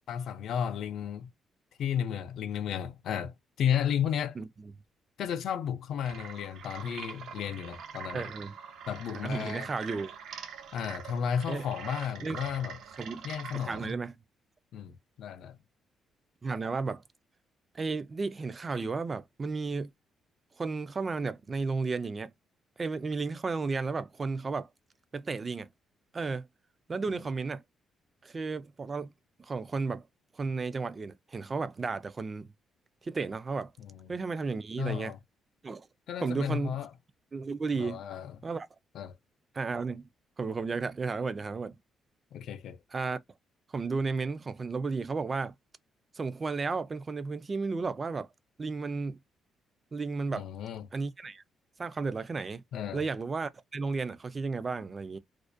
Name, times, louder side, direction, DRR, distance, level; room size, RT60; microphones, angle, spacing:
voice 1, 0.1-1.3 1.8-4.4 5.2-8.3 8.9-9.7 10.7-12.8 13.2-13.9 14.7-15.6 33.8-34.1 34.8-35.2 36.1-36.9 37.7-38.4 38.9-39.2 42.3-42.8 50.3-50.9 52.7-53.0, left 8 dB, 70° left, 0.4 m, -33 dB
sound 1, 6.0-13.9, right 7 dB, 75° right, 0.6 m, -44 dB
voice 2, 8.1-8.5 9.2-10.1 11.5-11.7 12.2-12.4 13.0-13.3 13.5-14.2 16.4-17.0 17.7-19.9 20.6-22.3 22.8-24.7 25.1-25.7 26.1-26.5 26.9-27.6 28.2-29.1 29.4-30.0 30.3-32.5 33.0-33.7 34.1-35.1 35.6-35.9 36.2-36.8 37.3-38.0 38.4-38.7 39.5-40.1 40.4-41.8 42.9-43.2 43.7-45.5 46.1-48.3 48.6-49.2 49.9-50.5 50.9-51.4 51.8-52.6 52.9-55.2, right 4 dB, 35° right, 0.3 m, -33 dB
2.4 x 2.1 x 2.4 m
cardioid pair, 90°, 0 cm